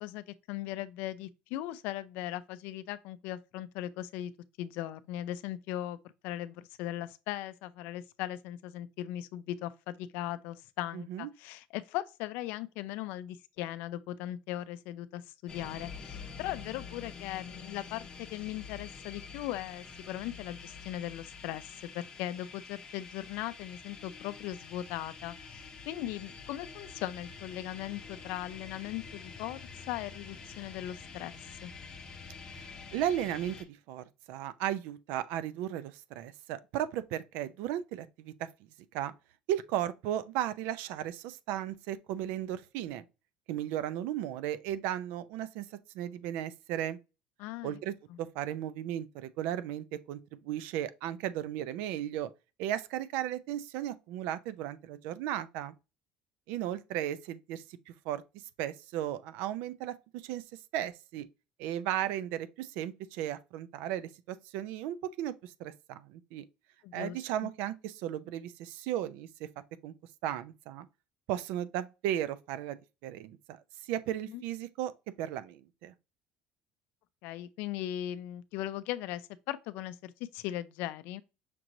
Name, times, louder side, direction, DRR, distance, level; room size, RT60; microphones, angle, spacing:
voice 1, 0.0-4.3 4.6-6.0 6.2-31.7 47.4-47.8 48.1-48.2 66.8-67.2 67.4-67.5 74.3-74.4 77.2-81.2, left 13 dB, 70° left, 0.4 m, -39 dB
voice 2, 10.9-11.3 32.5-38.3 38.9-39.1 39.5-43.0 43.5-45.7 45.9-47.0 47.6-52.3 52.6-55.7 56.5-58.2 58.6-60.4 60.7-61.3 61.6-66.4 66.9-69.5 69.8-69.9 70.2-70.9 71.3-72.8 73.0-74.9 75.2-75.9, right 11 dB, 75° right, 0.4 m, -35 dB
sound 1, 15.5-33.6, left 5 dB, 25° left, 0.9 m, -47 dB
5.9 x 2.9 x 2.6 m
cardioid pair, 160°, 3 cm